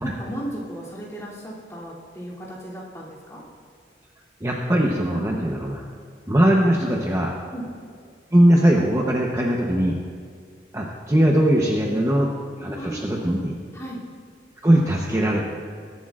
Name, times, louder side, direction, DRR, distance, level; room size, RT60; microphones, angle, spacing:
voice 1, 0.0-3.4 5.3-5.4 7.5-7.7 11.8-12.0 12.8-13.2 13.7-14.0, right 1 dB, 15° left, -7 dB, 2.8 m, -35 dB
voice 2, 4.4-5.8 6.3-7.4 8.3-10.0 10.7-12.3 12.6-13.5 14.6-15.4, right 1 dB, 15° right, -1 dB, 0.9 m, -20 dB
21.0 x 11.5 x 2.5 m, 2.2 s
head